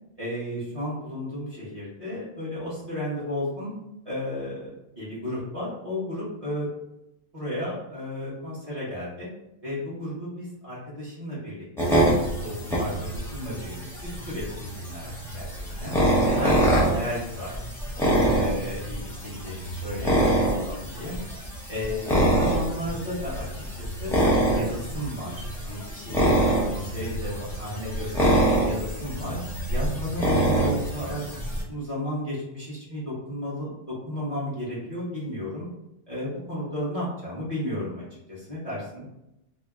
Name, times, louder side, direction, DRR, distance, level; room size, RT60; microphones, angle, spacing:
voice 1, 0.2-3.7 4.0-6.7 7.3-9.3 9.6-11.9 12.2-15.5 15.8-16.0 16.3-17.6 18.3-21.2 21.7-23.5 23.8-24.1 24.4-29.4 29.7-31.4 31.7-35.7 36.1-39.1, left 1 dB, 30° right, -8 dB, 1.1 m, -33 dB
sound 1, 11.8-31.6, right 1 dB, ahead, 0.6 m, -25 dB
2.9 x 2.8 x 3.6 m, 0.88 s
omnidirectional pair, 1.3 m